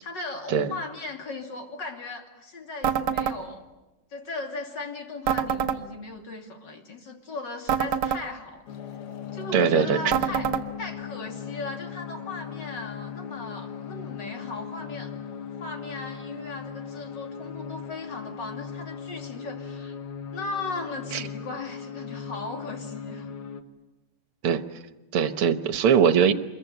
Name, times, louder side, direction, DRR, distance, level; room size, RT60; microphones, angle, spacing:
voice 1, 0.0-3.6 4.1-8.6 9.3-10.5 10.8-15.1 15.6-20.0 20.3-23.3, left 3 dB, 50° left, 3 dB, 3.3 m, -37 dB
sound 1, 2.8-3.4 5.3-5.8 7.7-8.2 10.1-10.6, right 8 dB, 55° right, 1.6 m, -25 dB
sound 2, 8.7-23.6, left 7 dB, 70° left, 2.1 m, -38 dB
voice 2, 9.5-10.0 21.1-21.2 24.4-24.6 25.1-26.3, right 7 dB, 80° right, 12 dB, 2.0 m, -21 dB
26.0 x 22.0 x 9.1 m, 1.0 s
omnidirectional pair, 2.4 m